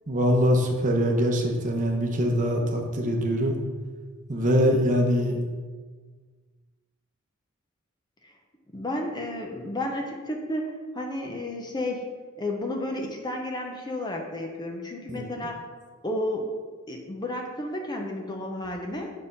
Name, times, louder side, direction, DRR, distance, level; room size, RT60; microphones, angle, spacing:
voice 1, 0.1-3.6 4.3-5.4 15.1-15.3, equal, 40° right, 2 dB, 0.8 m, -23 dB
voice 2, 8.7-12.1 12.4-15.6 16.0-16.5 16.9-19.1, left 1 dB, 20° left, 2 dB, 0.7 m, -32 dB
6.6 x 3.6 x 5.3 m, 1.5 s
head